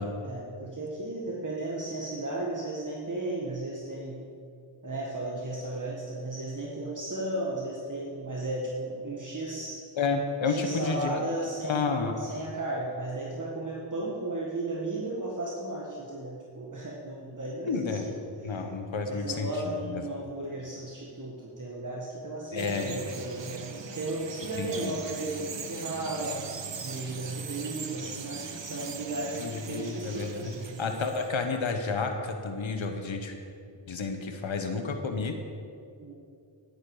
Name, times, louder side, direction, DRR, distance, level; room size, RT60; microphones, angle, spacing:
voice 1, 0.2-4.2 4.8-9.8 10.5-18.2 18.5-18.6 19.1-26.5 26.8-31.0 36.0-36.2, right 2 dB, 40° right, -3 dB, 1.9 m, -35 dB
voice 2, 10.0-11.2 11.6-12.2 17.7-18.0 18.4-20.0 22.5-23.0 24.6-24.9 29.4-30.5 30.8-33.3 33.9-35.3, left 4 dB, 70° left, 5 dB, 1.3 m, -31 dB
Bird vocalization bird call bird song, 22.6-31.5, right 5 dB, 65° right, 1.1 m, -40 dB
12.0 x 11.0 x 5.0 m, 2.5 s
cardioid pair, 50°, 47 cm